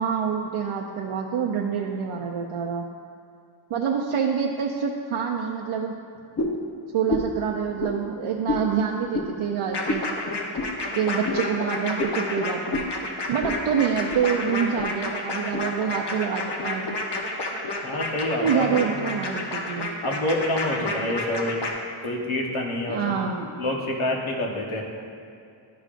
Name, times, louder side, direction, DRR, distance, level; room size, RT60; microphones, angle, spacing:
voice 1, 0.0-2.9 3.7-5.9 6.9-10.0 11.0-12.8 13.3-17.0 18.4-20.0 22.9-23.5, right 7 dB, 85° right, 0 dB, 0.6 m, -26 dB
sound 1, 6.4-6.6 7.1-7.4 7.8-8.0 8.5-8.7 9.1-9.3 9.9-10.1 10.6-10.7 11.2-11.4 12.0-12.2 12.7-12.9 13.4-13.6 13.9-14.3 14.8-14.9 15.5-15.6, left 2 dB, 30° left, 0.7 m, -28 dB
sound 2, 9.7-21.7, left 2 dB, 55° left, 1.0 m, -30 dB
voice 2, 17.8-19.0 20.0-21.6 22.0-23.3 23.6-24.8, left 1 dB, 80° left, -1 dB, 1.2 m, -27 dB
12.0 x 5.0 x 2.5 m, 2.4 s
wide cardioid pair, 80°, 49 cm